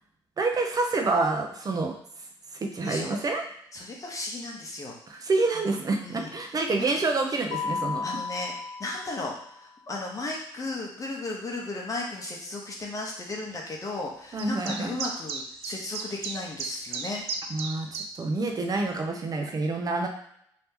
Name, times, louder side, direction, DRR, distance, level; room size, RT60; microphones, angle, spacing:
voice 1, 0.4-2.0 2.6-3.4 5.1-8.1 14.3-14.9 17.5-20.1, right 3 dB, 40° right, 3 dB, 0.7 m, -27 dB
voice 2, 2.8-3.2 3.7-5.2 6.0-6.9 8.0-8.5 8.8-17.3, left 2 dB, 35° left, -1 dB, 0.9 m, -35 dB
Mallet percussion, 7.5-9.6, left 5 dB, 75° left, 0.5 m, -34 dB
sound 1, 14.4-18.1, right 5 dB, 75° right, 0.5 m, -34 dB
2.9 x 2.8 x 3.6 m, 0.71 s
supercardioid pair, 75°, 10 cm